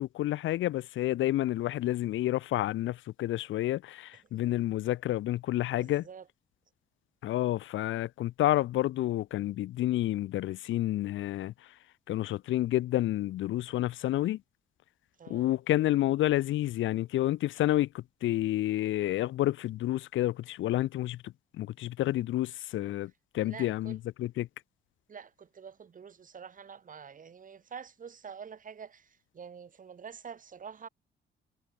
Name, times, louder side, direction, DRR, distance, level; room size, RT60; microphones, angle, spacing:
voice 1, 0.0-6.0 7.2-11.5 12.1-14.4 15.3-24.5, left 14 dB, 75° left, 0.8 m, -29 dB
voice 2, 4.1-4.7 5.7-6.3 15.2-15.6 23.0-23.1 23.4-24.0 25.1-30.9, right 6 dB, 40° right, 1.8 m, -47 dB
cardioid pair, 90°, 20 cm